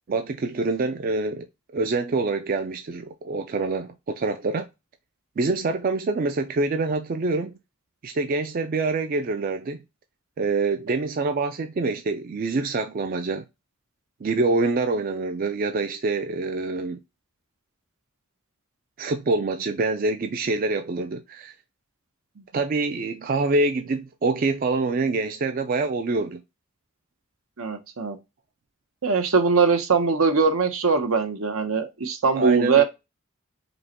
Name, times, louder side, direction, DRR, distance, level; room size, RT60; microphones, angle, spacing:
voice 1, 0.1-1.5 1.7-4.7 5.4-7.5 8.0-9.8 10.4-13.4 14.2-17.0 19.0-21.5 22.5-26.4 32.4-32.8, right 3 dB, 40° right, 0.3 m, -25 dB
voice 2, 27.6-28.2 29.0-32.8, right 5 dB, 80° right, 0.8 m, -21 dB
5.2 x 2.2 x 2.9 m
head